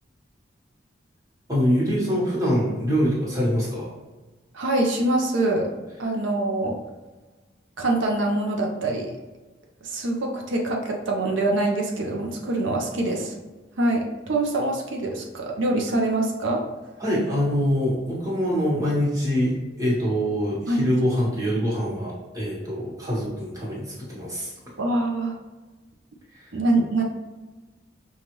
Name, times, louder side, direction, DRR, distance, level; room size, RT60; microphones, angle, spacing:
voice 1, 1.5-3.9 17.0-24.5 26.3-26.5, equal, 20° right, -6 dB, 1.1 m, -24 dB
voice 2, 4.5-5.7 6.0-6.7 7.8-9.2 9.8-13.3 13.8-16.6 20.7-20.9 24.8-25.3 26.5-27.0, right 2 dB, 85° right, 0 dB, 0.6 m, -24 dB
5.4 x 2.4 x 3.0 m, 1.2 s
head